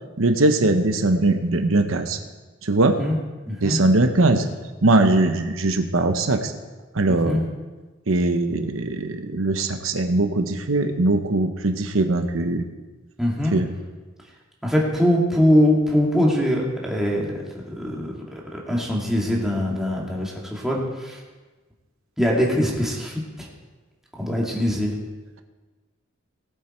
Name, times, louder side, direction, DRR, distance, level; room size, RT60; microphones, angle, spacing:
voice 1, 0.2-2.2 2.6-3.0 3.6-4.5 4.8-6.5 6.9-7.4 8.1-12.6 13.5-13.7, right 2 dB, 85° right, 6 dB, 1.0 m, -20 dB
voice 2, 3.5-3.8 7.2-7.5 13.2-13.5 14.6-21.2 22.2-23.5 24.2-25.0, equal, ahead, -4 dB, 2.4 m, -22 dB
19.0 x 7.9 x 4.5 m, 1.3 s
head